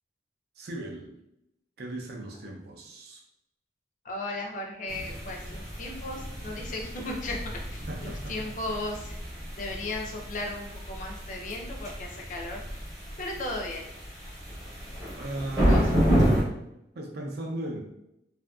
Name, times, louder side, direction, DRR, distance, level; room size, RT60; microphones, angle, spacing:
voice 1, 0.6-1.1 1.8-3.2 7.9-8.5 15.1-16.0 17.0-17.8, right 1 dB, 60° right, 1 dB, 0.5 m, -37 dB
voice 2, 4.0-9.2 9.5-12.6 13.2-13.8 15.6-15.9, left 2 dB, 45° left, 1 dB, 0.4 m, -36 dB
sound 1, 4.9-16.4, equal, 20° right, 0.8 m, -30 dB
2.7 x 2.4 x 2.3 m, 0.82 s
head